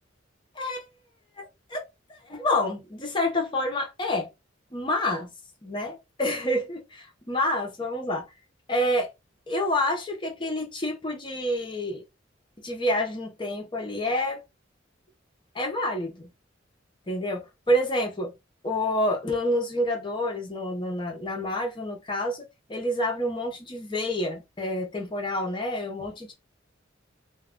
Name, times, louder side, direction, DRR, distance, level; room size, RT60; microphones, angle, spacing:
voice 1, 0.6-0.9 1.4-1.8 2.3-4.3 4.7-5.3 5.6-8.3 8.7-9.1 9.5-12.0 12.6-14.4 15.5-16.3 17.1-18.3 18.6-26.3, left 1 dB, 25° left, 0.5 m, -28 dB
2.2 x 2.1 x 3.5 m
head